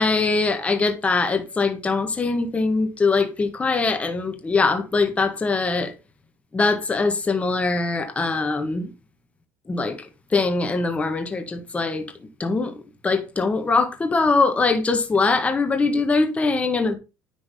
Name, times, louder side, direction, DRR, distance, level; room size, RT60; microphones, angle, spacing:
voice 1, 0.0-5.9 6.5-8.9 9.7-10.0 10.3-12.0 12.4-12.7 13.0-16.9, left 3 dB, 20° left, 1.6 m, -22 dB
10.0 x 3.9 x 5.2 m
cardioid pair, 120°, 7 cm